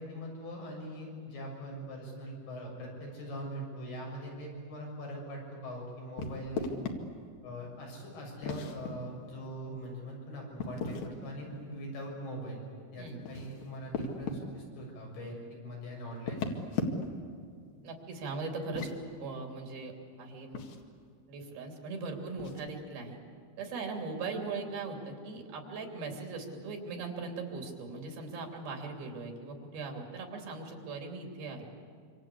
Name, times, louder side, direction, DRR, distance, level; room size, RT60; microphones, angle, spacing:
voice 1, 0.0-6.7 7.4-12.6 12.9-16.6, equal, 90° left, -1 dB, 8.9 m, -42 dB
sound 1, 6.2-7.0 8.4-8.9 10.6-11.2 13.1-14.4 16.2-17.3 18.6-19.0 20.5-20.8 22.4-22.7, left 4 dB, 65° left, 3.6 m, -36 dB
voice 2, 17.8-19.9 20.2-20.6 21.3-23.2 23.6-31.7, right 3 dB, 75° right, 3 dB, 5.0 m, -39 dB
26.5 x 26.5 x 8.5 m, 2.2 s
omnidirectional pair, 4.4 m